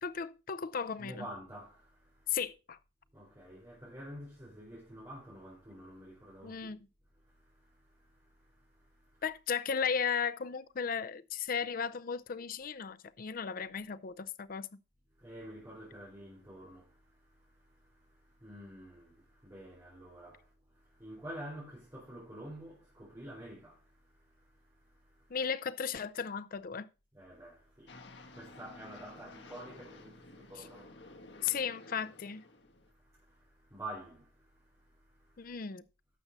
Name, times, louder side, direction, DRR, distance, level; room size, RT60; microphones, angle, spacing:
voice 1, 0.0-1.3 2.3-2.8 6.4-6.8 9.2-14.7 25.3-26.9 30.6-30.7 31.4-32.4 35.4-35.8, left 6 dB, 50° left, 0.5 m, -35 dB
voice 2, 1.0-2.4 3.1-6.8 7.2-9.2 15.2-25.4 27.1-31.6 32.8-35.5, right 1 dB, 20° right, 4.1 m, -50 dB
sound 1, 27.9-32.9, left 2 dB, 80° left, 1.5 m, -53 dB
12.0 x 6.9 x 4.1 m
head